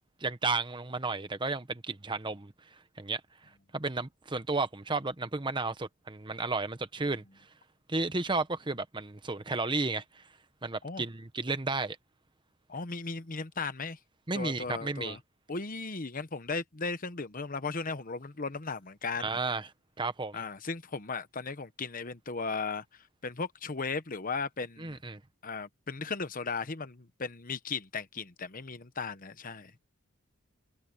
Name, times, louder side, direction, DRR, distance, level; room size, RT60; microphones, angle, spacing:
voice 1, 0.2-2.5 3.0-3.2 3.7-7.2 7.9-10.2 10.6-12.0 14.3-15.2 19.2-19.7 20.0-20.4 24.8-25.2, right 3 dB, 20° right, 1.0 m, -33 dB
voice 2, 12.7-14.0 14.3-15.2 15.5-19.4 20.3-25.0 25.4-29.7, left 4 dB, 40° left, 1.0 m, -36 dB
head